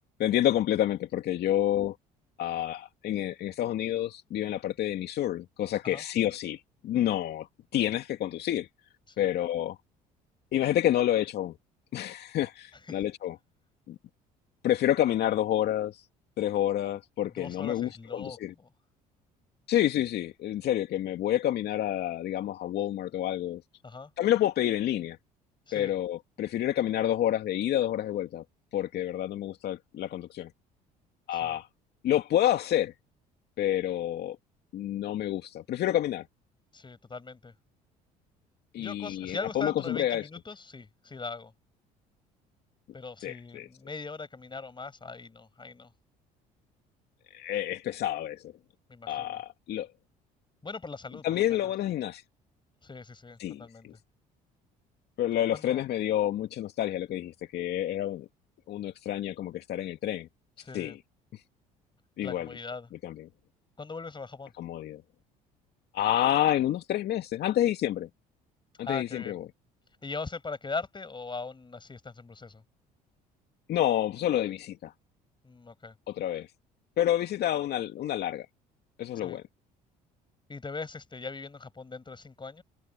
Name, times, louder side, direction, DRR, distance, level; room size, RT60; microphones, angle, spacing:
voice 1, 0.2-2.0 2.4-7.5 7.7-8.7 9.2-9.8 10.5-11.6 11.9-13.4 13.9-14.0 14.6-16.0 16.4-18.5 19.7-23.6 24.2-25.2 25.7-28.4 28.7-30.5 31.3-31.7 32.0-32.9 33.6-34.4 34.7-36.3 38.7-40.3 43.2-43.7 47.3-48.4 49.1-49.9 51.2-52.2 53.4-53.9 55.2-58.3 58.7-60.3 60.7-61.0 61.3-61.4 62.2-62.5 63.0-63.3 64.6-65.0 65.9-68.1 68.8-69.5 73.7-74.9 76.1-76.5 77.0-78.5 79.0-79.4, left 12 dB, 60° left, 2.4 m, -28 dB
voice 2, 17.2-18.7 23.8-24.1 25.7-25.9 31.3-31.6 36.7-37.5 38.8-41.5 42.9-45.9 48.9-49.4 50.6-51.6 52.8-53.9 55.5-55.8 60.6-61.0 62.2-62.9 63.8-64.5 68.9-69.4 70.0-72.6 75.4-75.9 79.2-79.4 80.5-82.6, left 4 dB, 25° left, 7.4 m, -40 dB
hypercardioid pair, 65°, 19 cm